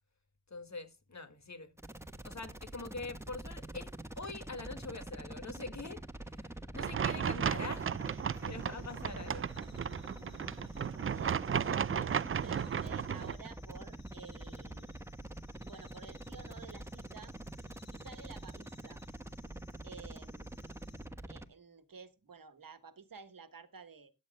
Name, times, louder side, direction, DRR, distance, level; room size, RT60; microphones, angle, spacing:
voice 1, 0.5-1.7 2.2-6.0 6.3-6.5 6.7-7.9 8.3-9.5, left 3 dB, 50° left, 2.0 m, -44 dB
sound 1, 1.8-21.5, right 1 dB, 5° right, 1.3 m, -46 dB
sound 2, 6.8-13.3, right 8 dB, 40° right, 0.4 m, -34 dB
sound 3, 7.8-21.1, left 5 dB, 80° left, 5.1 m, -64 dB
voice 2, 11.1-12.2 12.4-14.9 15.6-19.0 19.8-20.7 21.3-24.1, right 5 dB, 70° right, 1.5 m, -52 dB
14.0 x 10.5 x 2.2 m
cardioid pair, 55°, 35 cm